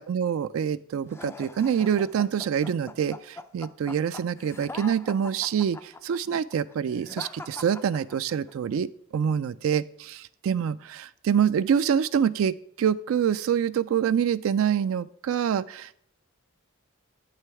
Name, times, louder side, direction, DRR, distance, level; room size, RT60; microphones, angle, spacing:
voice 1, 0.0-15.9, right 8 dB, 70° right, 15 dB, 0.3 m, -26 dB
sound 1, 1.1-8.5, left 2 dB, 10° left, 0.3 m, -42 dB
8.4 x 6.5 x 4.7 m, 0.65 s
head